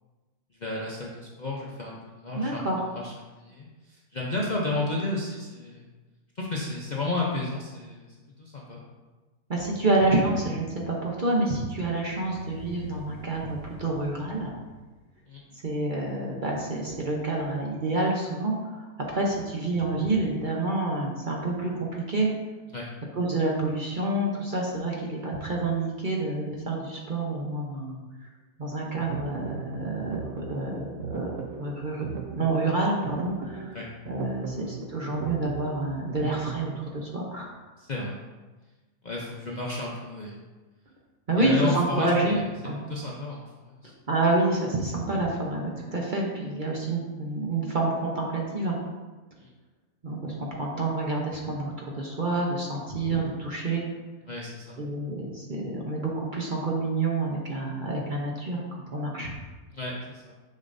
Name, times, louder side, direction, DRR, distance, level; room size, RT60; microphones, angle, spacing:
voice 1, 0.6-2.6 3.0-5.9 6.4-8.1 8.4-8.8 15.3-15.4 22.7-22.9 33.7-33.9 37.8-38.2 39.0-40.4 41.4-42.4 42.9-43.9 49.4-49.5 54.3-54.8 59.7-60.3, left 2 dB, 40° left, -4 dB, 0.7 m, -32 dB
voice 2, 2.3-2.8 9.5-14.5 15.6-22.3 23.2-28.3 28.6-33.8 34.1-37.5 41.3-42.8 44.1-48.7 50.0-53.8 54.8-59.3, right 2 dB, 40° right, -2 dB, 0.9 m, -28 dB
sound 1, 12.0-15.9, left 3 dB, 10° right, 1.2 m, -46 dB
sound 2, 28.7-36.8, right 6 dB, 70° right, 1.0 m, -39 dB
6.7 x 6.4 x 2.6 m, 1.2 s
omnidirectional pair, 1.5 m